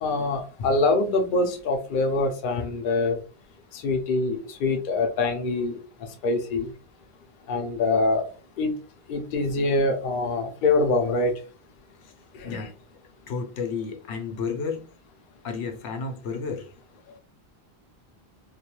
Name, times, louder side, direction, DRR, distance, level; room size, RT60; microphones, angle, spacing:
voice 1, 0.0-3.2 3.8-5.7 6.2-6.7 7.5-8.2 8.6-8.7 9.1-11.3 12.4-12.6, left 3 dB, 60° left, 0.6 m, -24 dB
voice 2, 13.3-14.8 15.4-16.7, left 5 dB, 90° left, 0.9 m, -32 dB
2.3 x 2.2 x 2.8 m
omnidirectional pair, 1.1 m